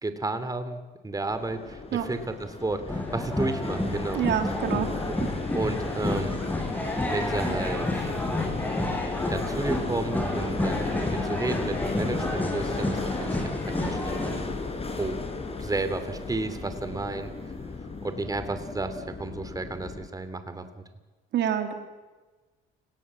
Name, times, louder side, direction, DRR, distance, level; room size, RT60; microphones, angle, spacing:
voice 1, 0.0-4.2 5.5-6.4 7.1-7.9 9.3-14.6 15.0-15.2 15.6-17.3 18.0-20.8, right 2 dB, 20° right, 10 dB, 2.9 m, -32 dB
sound 1, 1.3-20.1, left 3 dB, 30° left, 5.2 m, -34 dB
sound 2, 2.9-14.4, left 1 dB, 10° left, 6.7 m, -31 dB
voice 2, 4.1-4.9 5.2-5.3 21.3-21.7, right 10 dB, 70° right, 6 dB, 3.3 m, -27 dB
29.5 x 18.0 x 7.6 m, 1.2 s
supercardioid pair, 80°, 19 cm